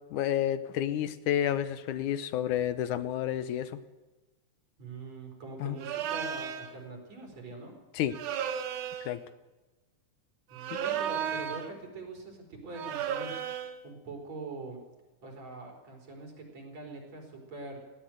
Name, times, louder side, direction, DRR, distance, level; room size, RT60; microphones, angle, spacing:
voice 1, 0.1-3.8 5.6-5.8 7.9-8.1 9.1-9.2, left 10 dB, 80° left, 13 dB, 2.4 m, -30 dB
voice 2, 4.8-7.8 10.5-13.4 13.8-14.8 15.2-17.9, right 3 dB, 60° right, 1 dB, 5.7 m, -43 dB
sound 1, 5.8-6.7 8.1-9.2 10.5-11.7 12.7-13.8, right 9 dB, 75° right, 2.7 m, -34 dB
18.0 x 16.0 x 9.3 m, 1.1 s
omnidirectional pair, 3.5 m